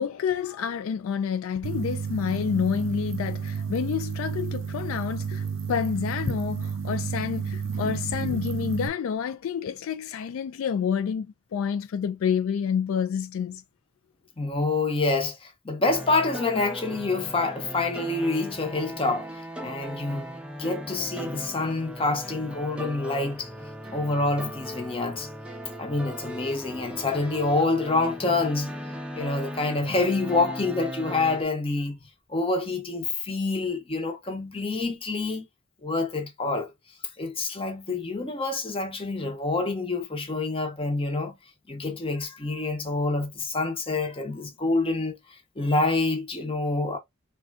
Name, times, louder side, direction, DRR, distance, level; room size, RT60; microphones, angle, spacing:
voice 1, 0.0-13.6, left 7 dB, 80° left, 0.3 m, -28 dB
sound 1, 1.6-8.9, right 6 dB, 65° right, 0.4 m, -31 dB
voice 2, 14.4-20.3 20.6-23.5 23.9-25.3 25.8-28.7 29.1-32.0 32.3-35.5 35.8-36.7 37.2-41.3 41.7-45.2 45.6-47.0, left 3 dB, 25° left, 0.8 m, -27 dB
sound 2, 15.8-31.4, equal, 5° right, 0.5 m, -38 dB
3.6 x 2.2 x 2.3 m
head